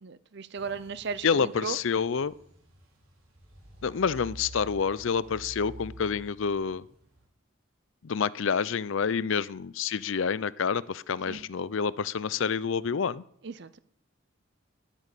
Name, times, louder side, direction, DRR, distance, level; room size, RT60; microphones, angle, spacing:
voice 1, 0.0-1.8 11.3-11.4 13.4-13.8, right 5 dB, 55° right, 0.6 m, -36 dB
sound 1, 0.5-7.3, right 1 dB, 80° right, 4.7 m, -49 dB
voice 2, 1.2-2.3 3.8-6.8 8.0-13.2, left 6 dB, 70° left, 0.5 m, -28 dB
11.0 x 9.1 x 8.3 m
head